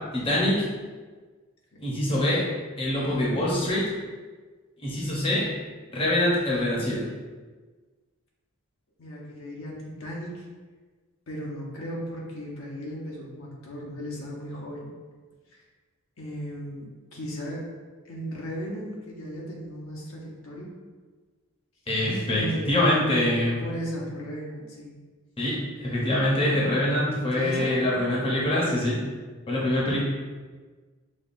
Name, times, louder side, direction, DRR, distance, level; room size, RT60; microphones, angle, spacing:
voice 1, 0.1-0.6 1.8-2.4 2.8-3.8 4.8-5.5 5.9-7.0 21.9-23.6 25.4-29.0 29.5-30.0, left 1 dB, 25° left, -5 dB, 0.7 m, -24 dB
voice 2, 9.0-10.5 11.3-14.9 15.5-15.6 16.2-17.7 18.0-20.7 22.3-22.9 23.3-24.9 27.3-27.8, equal, 60° left, -3 dB, 0.6 m, -36 dB
5.2 x 2.3 x 2.6 m, 1.4 s
head